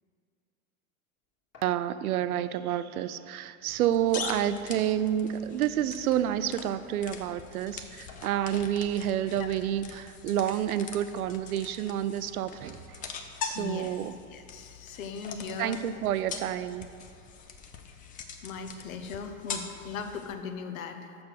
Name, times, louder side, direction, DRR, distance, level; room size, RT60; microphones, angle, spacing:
sound 1, 1.5-1.8 3.0-3.1 3.5-3.6 4.8-5.4 6.3-6.4 8.1-8.5, left 3 dB, 35° left, 1.8 m, -53 dB
voice 1, 1.6-13.0 13.4-14.1 15.6-16.9, right 11 dB, 80° right, 13 dB, 0.5 m, -29 dB
sound 2, 3.7-20.3, left 6 dB, 20° left, 0.4 m, -43 dB
voice 2, 13.5-13.9 14.3-15.8 18.4-21.2, left 6 dB, 70° left, 7 dB, 0.9 m, -38 dB
6.1 x 6.0 x 6.5 m, 2.4 s
hypercardioid pair, 110°, 43 cm